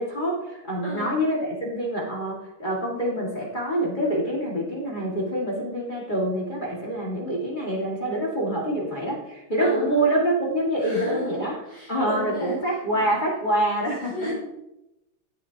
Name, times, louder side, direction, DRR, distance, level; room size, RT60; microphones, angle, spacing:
voice 1, 0.0-11.6 11.9-14.3, right 1 dB, 25° left, -4 dB, 1.9 m, -26 dB
voice 2, 0.8-1.2 9.6-10.0 10.8-12.6 12.9-13.0 14.1-14.3, equal, 65° left, -6 dB, 2.8 m, -34 dB
16.5 x 6.4 x 2.8 m, 0.88 s
omnidirectional pair, 2.1 m